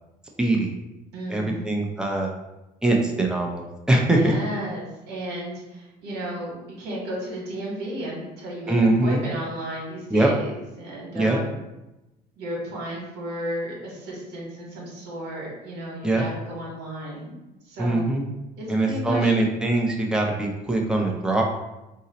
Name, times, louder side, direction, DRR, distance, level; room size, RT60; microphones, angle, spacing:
voice 1, 0.4-0.7 1.3-2.3 2.8-4.3 8.7-9.2 10.1-10.3 11.1-11.4 16.0-16.2 17.8-18.3 18.7-21.4, right 2 dB, 5° right, 0 dB, 0.5 m, -22 dB
voice 2, 1.1-1.7 4.1-11.6 12.4-17.3 17.6-18.1 18.6-19.4, right 1 dB, 85° right, -3 dB, 1.1 m, -33 dB
2.7 x 2.0 x 3.9 m, 0.98 s
cardioid pair, 110°, 17 cm